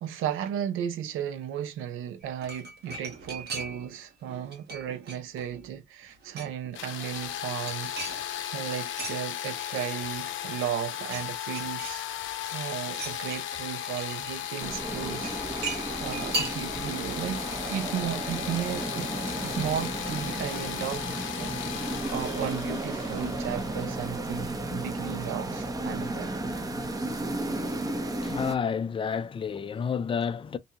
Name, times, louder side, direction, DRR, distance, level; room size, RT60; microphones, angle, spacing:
voice 1, 0.0-12.1 12.5-19.1 19.4-26.4, right 10 dB, 90° right, 0.6 m, -35 dB
sound 1, 2.2-4.0 4.3-5.7 6.0-6.7 7.0-9.2 9.5-10.4 10.7-11.3 11.5-12.4 12.9-14.4 15.2-17.0 17.3-17.4, right 3 dB, 55° right, 1.0 m, -38 dB
sound 2, 6.7-24.5, left 11 dB, 75° left, 0.6 m, -36 dB
sound 3, 14.6-28.5, right 2 dB, 20° right, 0.6 m, -33 dB
voice 2, 28.2-30.6, left 6 dB, 25° left, 0.4 m, -30 dB
2.7 x 2.2 x 2.8 m
cardioid pair, 90°, 20 cm